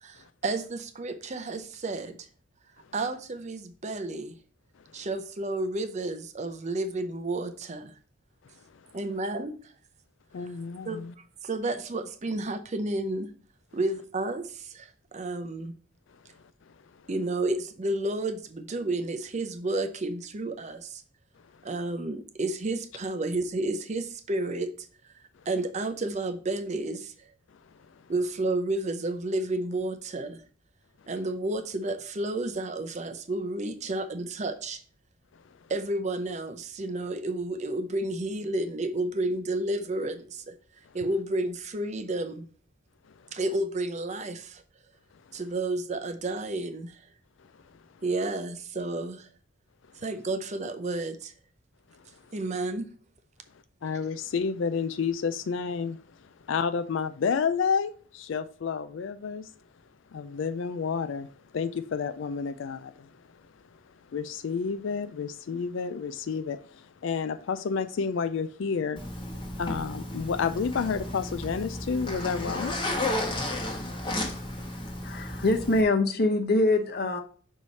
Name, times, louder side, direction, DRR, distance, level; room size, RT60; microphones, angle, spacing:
voice 1, 0.0-2.3 2.9-4.3 4.9-7.9 8.9-9.5 10.8-13.3 13.7-15.7 17.1-21.0 21.6-24.7 25.5-27.1 28.1-30.4 31.1-34.8 35.7-40.5 40.9-42.4 43.3-44.6 45.3-47.0 48.0-49.3 50.0-51.3 52.3-52.9, right 2 dB, 35° right, 0.5 m, -31 dB
voice 2, 10.3-11.1 53.8-59.5 60.1-61.3 61.5-63.1 64.1-69.0 69.5-72.7, left 5 dB, 65° left, 0.4 m, -30 dB
Zipper (clothing), 69.0-75.8, left 1 dB, 25° left, 1.1 m, -33 dB
voice 3, 75.0-77.2, left 2 dB, 50° left, 0.8 m, -24 dB
5.5 x 4.7 x 4.1 m
head